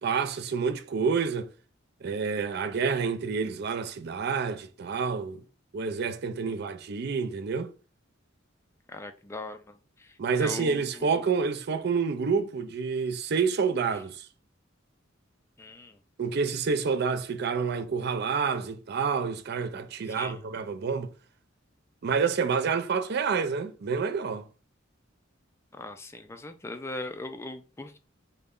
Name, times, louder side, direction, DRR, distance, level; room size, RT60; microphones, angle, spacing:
voice 1, 0.0-1.5 2.0-5.4 5.7-7.7 10.2-14.3 16.2-21.1 22.0-24.5, right 5 dB, 55° right, 0.4 m, -28 dB
voice 2, 8.9-11.1 15.6-16.0 20.1-20.4 25.7-28.0, left 2 dB, 15° left, 0.3 m, -40 dB
3.9 x 2.2 x 3.6 m
head